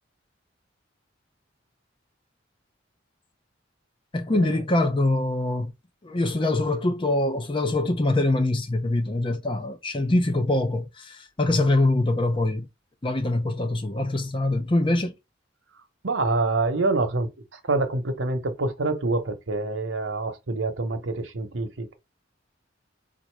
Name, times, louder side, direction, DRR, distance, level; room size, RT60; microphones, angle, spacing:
voice 1, 4.1-5.7 6.0-12.7 13.0-15.1, left 2 dB, 25° left, 0.6 m, -24 dB
voice 2, 16.0-22.0, right 3 dB, 85° right, 1.0 m, -26 dB
4.0 x 2.5 x 4.6 m
head